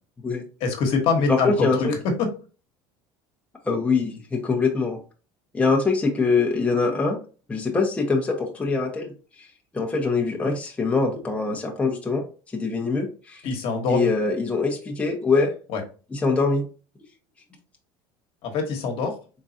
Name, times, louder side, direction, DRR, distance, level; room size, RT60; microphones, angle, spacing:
voice 1, 0.6-2.3 13.4-14.1 15.7-15.8 18.4-19.1, left 4 dB, 60° left, 3 dB, 1.2 m, -24 dB
voice 2, 1.3-1.9 3.6-5.0 5.5-7.2 7.5-9.1 9.7-12.2 12.5-13.4 13.9-15.5 16.1-16.6, left 4 dB, 10° left, 0 dB, 0.8 m, -23 dB
3.8 x 3.7 x 2.7 m, 0.36 s
supercardioid pair, 120°, 11 cm